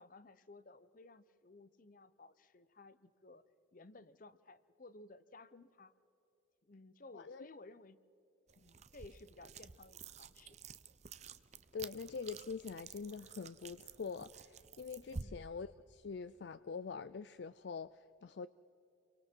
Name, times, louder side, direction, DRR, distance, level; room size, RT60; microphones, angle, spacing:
voice 1, 0.0-3.4 3.7-5.9 6.6-8.0 8.6-10.6 10.9-11.0 15.2-15.4, left 2 dB, 45° left, 15 dB, 0.8 m, -57 dB
voice 2, 7.1-7.5 11.7-18.5, left 5 dB, 60° left, 14 dB, 0.4 m, -45 dB
sound 1, 8.5-15.2, right 5 dB, 35° right, 0.6 m, -51 dB
30.0 x 24.0 x 4.5 m, 2.8 s
head